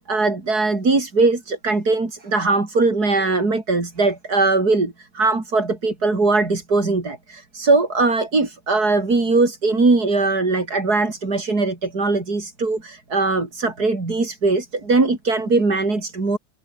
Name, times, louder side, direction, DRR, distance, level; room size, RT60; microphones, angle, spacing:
voice 1, 0.1-16.4, right 3 dB, 85° right, 4.8 m, -20 dB
open air
omnidirectional pair, 1.6 m